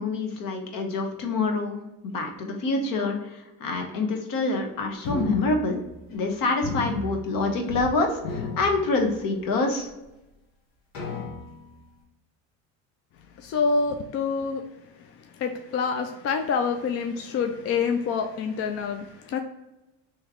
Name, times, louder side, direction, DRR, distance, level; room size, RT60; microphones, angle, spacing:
voice 1, 0.0-1.8 2.0-5.8 6.1-9.9, left 3 dB, 60° left, 3 dB, 1.1 m, -26 dB
sound 1, 5.0-6.3 6.6-7.9 8.2-9.5 10.1-10.2 10.9-11.8, left 4 dB, 80° left, 1.2 m, -34 dB
voice 2, 13.4-14.6 15.4-19.4, left 5 dB, 40° left, 6 dB, 0.4 m, -27 dB
3.1 x 3.1 x 3.7 m, 0.96 s
supercardioid pair, 95°, 39 cm